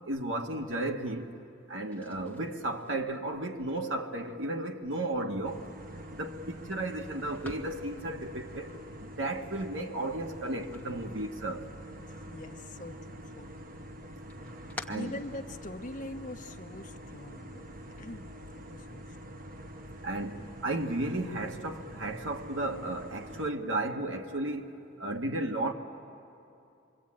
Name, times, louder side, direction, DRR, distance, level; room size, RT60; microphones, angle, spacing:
voice 1, 0.0-1.3 1.7-5.7 6.1-8.7 9.0-11.7 14.8-15.1 20.0-24.7 25.0-25.7, right 2 dB, 75° right, 1.5 m, -34 dB
sound 1, 1.8-11.8 12.1-13.0 13.3-16.0, left 2 dB, 10° left, 1.0 m, -51 dB
sound 2, 5.4-23.5, equal, 45° right, 0.9 m, -46 dB
voice 2, 12.0-13.5 14.9-19.3, left 1 dB, 40° left, 1.0 m, -44 dB
27.5 x 23.0 x 8.7 m
head